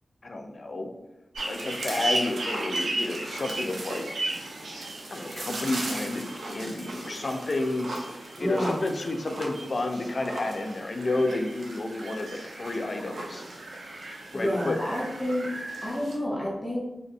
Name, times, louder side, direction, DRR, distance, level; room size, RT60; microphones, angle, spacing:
voice 1, 0.2-0.9 1.5-4.0 5.1-13.4 14.3-14.8, left 2 dB, 50° left, 4 dB, 0.3 m, -31 dB
sound 1, 1.3-16.2, right 2 dB, 90° right, 0.5 m, -35 dB
voice 2, 8.4-8.8 14.1-15.5 15.8-16.8, left 1 dB, 15° left, -5 dB, 0.7 m, -29 dB
3.7 x 2.1 x 2.6 m, 0.98 s
wide cardioid pair, 80°, 0 cm